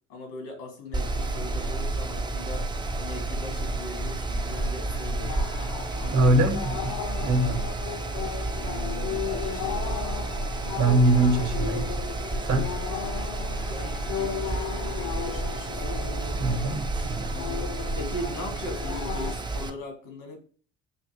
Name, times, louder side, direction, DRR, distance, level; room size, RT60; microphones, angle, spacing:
voice 1, 0.1-5.5 6.0-6.3 8.5-10.1 12.5-12.9 13.7-15.9 17.3-20.4, left 1 dB, 85° left, 1.7 m, -40 dB
Mechanical fan, 0.9-19.7, right 2 dB, 15° right, 0.4 m, -31 dB
sound 1, 1.1-19.3, left 9 dB, 55° left, 0.6 m, -37 dB
voice 2, 6.1-7.0 7.2-7.6 10.8-11.9 12.5-12.6 16.3-17.3, right 2 dB, 55° right, 1.0 m, -23 dB
5.4 x 2.5 x 2.8 m
supercardioid pair, 75°, 36 cm